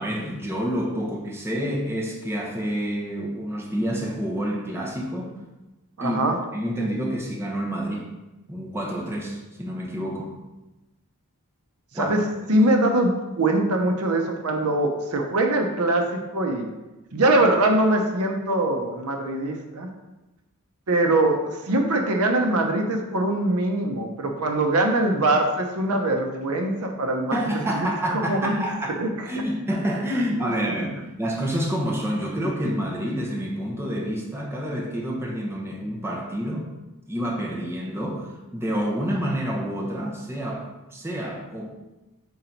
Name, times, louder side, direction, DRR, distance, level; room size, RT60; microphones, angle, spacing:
voice 1, 0.0-5.3 6.0-6.2 6.5-8.1 8.5-10.3 11.9-12.1 27.3-36.7 37.1-40.7 40.9-41.7, equal, 10° right, -2 dB, 0.9 m, -28 dB
voice 2, 6.0-6.4 11.9-12.2 12.5-16.7 17.1-19.9 20.9-27.4 27.7-27.8 28.1-28.5 29.0-29.3, right 2 dB, 70° right, 3 dB, 0.7 m, -22 dB
5.5 x 3.9 x 4.5 m, 1.0 s
head